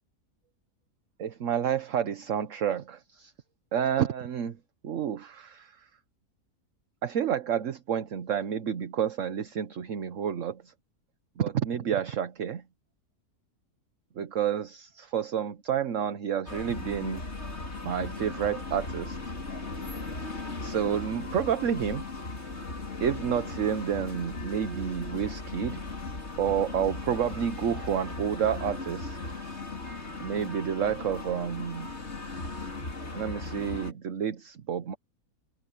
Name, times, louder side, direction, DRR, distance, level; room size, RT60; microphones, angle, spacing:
voice 1, 1.2-3.3 3.7-4.6 4.8-5.9 7.0-10.7 11.4-12.6 14.2-17.2 17.8-19.2 20.6-22.0 23.0-25.8 26.4-29.2 30.2-31.9 33.1-35.0, right 8 dB, 55° right, 1.3 m, -29 dB
sound 1, 16.5-33.9, left 3 dB, 45° left, 3.4 m, -37 dB
omnidirectional pair, 1.6 m